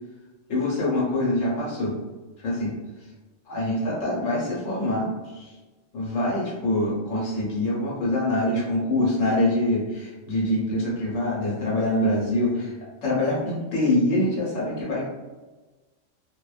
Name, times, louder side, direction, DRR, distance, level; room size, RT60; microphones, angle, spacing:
voice 1, 0.5-2.0 2.4-2.8 3.5-5.5 5.9-12.7 13.0-15.1, left 1 dB, 75° left, -6 dB, 1.1 m, -25 dB
2.5 x 2.1 x 2.3 m, 1.2 s
omnidirectional pair, 1.3 m